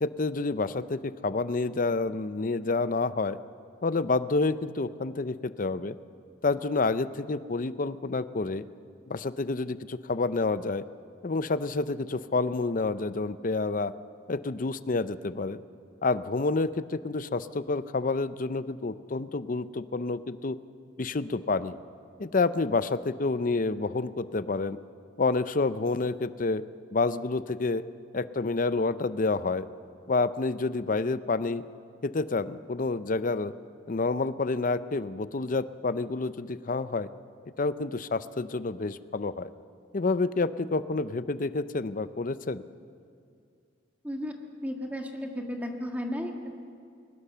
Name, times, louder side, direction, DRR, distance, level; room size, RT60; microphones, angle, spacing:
voice 1, 0.0-3.4 3.8-6.0 6.4-8.6 9.1-10.8 11.2-13.9 14.3-15.6 16.0-20.6 21.0-21.8 22.2-24.8 25.2-26.6 26.9-27.8 28.1-29.7 30.1-31.6 32.0-33.5 33.9-37.1 37.6-39.5 39.9-42.6, left 3 dB, 45° left, 14 dB, 0.6 m, -28 dB
voice 2, 44.6-46.3, equal, 10° right, 2 dB, 1.8 m, -33 dB
22.5 x 20.0 x 6.8 m, 2.3 s
head